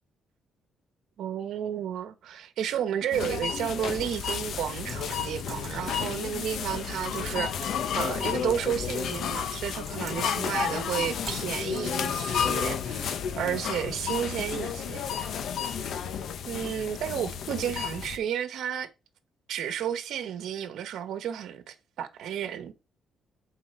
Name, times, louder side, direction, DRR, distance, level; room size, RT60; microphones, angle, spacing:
voice 1, 1.2-7.7 7.9-15.3 15.8-15.9 16.4-18.9 19.5-22.7, right 9 dB, 75° right, 1.1 m, -32 dB
sound 1, 3.1-18.2, left 7 dB, 70° left, 0.9 m, -32 dB
Typing, 4.0-12.1, right 4 dB, 35° right, 3.1 m, -48 dB
7.7 x 4.5 x 4.5 m
cardioid pair, 90°, 0 cm